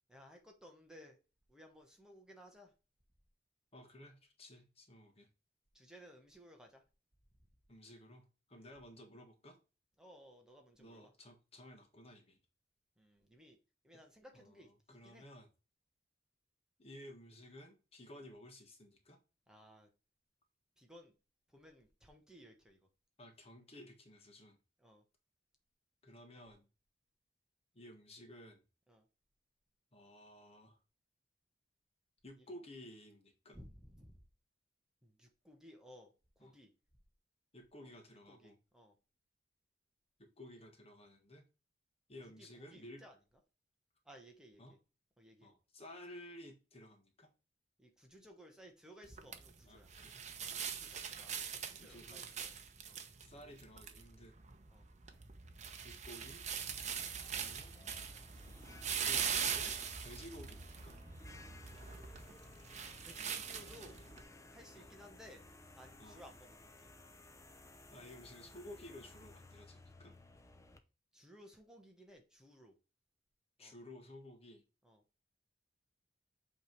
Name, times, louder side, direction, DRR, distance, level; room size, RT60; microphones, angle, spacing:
voice 1, 0.1-1.2 1.5-2.7 5.7-6.8 8.5-8.7 10.0-11.1 13.0-13.6 13.8-14.7 15.0-15.2 19.5-19.9 20.8-21.1 21.5-22.8 24.8-25.0 28.9-29.0 33.5-34.2 35.0-36.7 37.8-38.9 42.2-43.2 44.0-44.8 45.2-45.5 47.8-49.9 50.2-52.5 52.8-53.0 54.7-54.9 56.8-57.0 63.0-64.0 64.5-65.4 65.7-66.9 71.1-72.7 73.6-73.8 74.8-75.0, equal, 5° right, 2 dB, 1.3 m, -59 dB
voice 2, 3.7-5.3 7.7-9.6 10.8-12.4 14.3-15.5 16.8-19.2 23.2-24.6 26.0-26.7 27.7-28.6 29.9-30.8 32.2-33.6 36.4-36.6 37.5-38.6 40.2-41.4 42.1-43.0 44.6-44.8 45.4-47.3 49.7-50.3 51.8-52.3 53.2-54.3 55.8-56.5 57.2-57.8 59.0-61.0 64.7-64.9 66.0-66.2 67.9-70.1 73.6-74.6, left 1 dB, 35° left, 5 dB, 1.4 m, -54 dB
sound 1, 49.0-64.2, right 7 dB, 40° right, 0.9 m, -42 dB
sound 2, 56.6-70.8, left 2 dB, 15° left, 0.7 m, -58 dB
8.0 x 3.4 x 4.6 m, 0.31 s
head